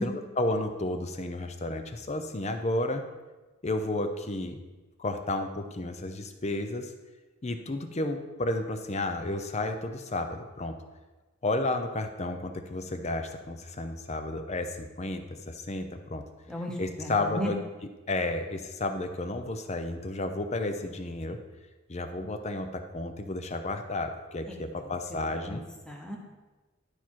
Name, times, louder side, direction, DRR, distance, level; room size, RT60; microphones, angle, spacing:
voice 1, 0.0-3.0 3.6-4.6 5.0-6.9 7.4-10.8 11.4-16.2 16.8-17.6 18.1-21.4 21.9-25.6, left 2 dB, 35° left, 7 dB, 0.7 m, -32 dB
voice 2, 16.5-17.5 24.5-24.6 24.8-24.9 25.5-25.6 25.9-26.2, equal, 5° left, 0 dB, 1.2 m, -34 dB
11.5 x 4.4 x 4.6 m, 1.2 s
head